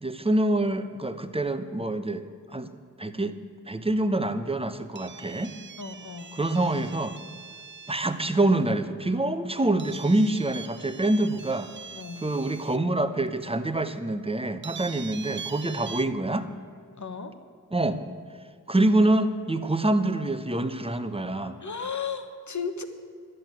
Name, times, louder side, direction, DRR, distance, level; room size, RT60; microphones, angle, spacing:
voice 1, 0.0-2.7 3.0-3.4 3.7-5.5 6.3-7.2 7.9-11.7 12.2-16.5 17.7-18.0 18.7-21.6, right 2 dB, 15° right, 10 dB, 0.8 m, -26 dB
sound 1, 4.9-8.1 9.8-12.8 13.4-13.5 14.6-16.1, right 6 dB, 35° right, 0.4 m, -43 dB
voice 2, 5.8-6.4 11.9-12.2 17.0-17.3 21.6-22.8, left 6 dB, 65° left, 8 dB, 1.2 m, -34 dB
11.5 x 7.9 x 9.2 m, 2.2 s
wide cardioid pair, 75°, 32 cm